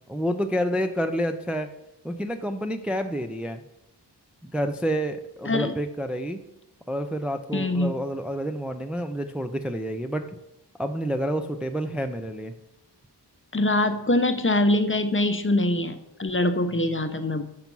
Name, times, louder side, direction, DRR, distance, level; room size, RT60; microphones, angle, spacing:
voice 1, 0.0-1.7 2.0-3.6 4.4-6.4 6.9-10.3 10.8-12.5, equal, 5° right, 6 dB, 0.5 m, -29 dB
voice 2, 7.5-7.9 13.5-17.4, left 1 dB, 30° left, 8 dB, 0.7 m, -23 dB
5.8 x 5.3 x 6.1 m, 0.84 s
wide cardioid pair, 65°, 41 cm